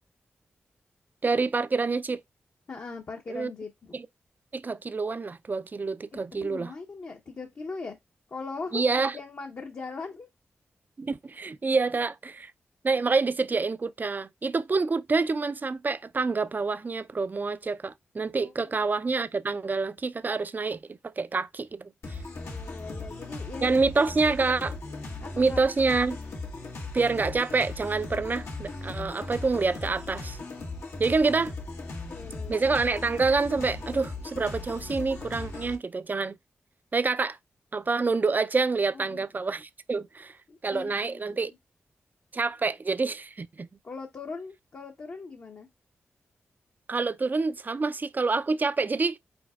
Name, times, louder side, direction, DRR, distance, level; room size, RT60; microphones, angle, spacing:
voice 1, 1.2-2.2 3.3-3.5 3.9-4.1 4.5-6.7 8.7-9.2 11.0-12.5 12.8-22.2 23.6-24.8 25.4-26.2 26.9-30.4 31.0-31.5 32.5-36.4 36.9-37.4 37.7-40.4 40.6-41.5 42.3-43.7 46.9-49.2, right 4 dB, 40° right, 0.4 m, -27 dB
voice 2, 2.7-4.0 6.1-8.0 8.3-10.3 18.4-18.5 22.3-23.7 24.0-24.1 25.2-25.6 31.3-31.5 32.1-32.6 38.9-39.3 40.5-41.5 43.8-45.7, left 4 dB, 55° left, 0.9 m, -40 dB
sound 1, 22.0-35.8, left 3 dB, 80° left, 1.1 m, -38 dB
5.2 x 4.1 x 2.3 m
supercardioid pair, 40°, 5 cm